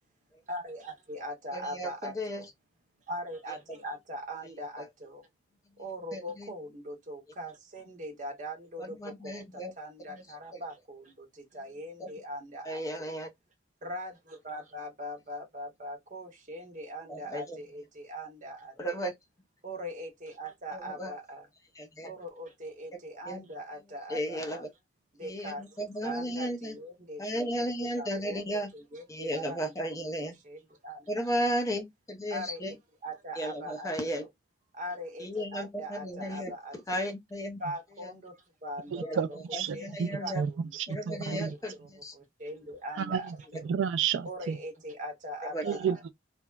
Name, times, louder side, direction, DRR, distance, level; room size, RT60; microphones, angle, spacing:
voice 1, 0.5-2.5 3.1-5.3 5.8-13.2 13.8-19.1 19.6-21.5 22.0-24.6 25.1-29.7 30.2-31.6 32.3-34.3 34.7-37.1 37.6-39.4 39.7-40.7 41.1-43.7 44.2-46.0, equal, 40° right, 0.8 m, -41 dB
voice 2, 1.5-2.4 6.1-6.5 8.8-9.7 12.0-12.1 12.7-13.3 17.1-17.6 18.8-19.1 20.7-21.1 21.8-22.1 23.3-23.4 24.1-24.7 25.2-26.7 27.2-28.7 29.1-30.3 31.1-32.7 33.4-34.3 35.2-36.5 36.9-37.6 39.0-39.2 39.7-40.4 40.9-41.7 42.0-42.1 45.5-45.8, equal, 15° left, 0.5 m, -34 dB
voice 3, 38.9-40.1 40.3-41.5 43.0-43.4 43.7-44.6 45.6-46.1, right 7 dB, 75° right, 0.3 m, -31 dB
3.3 x 2.0 x 2.2 m
head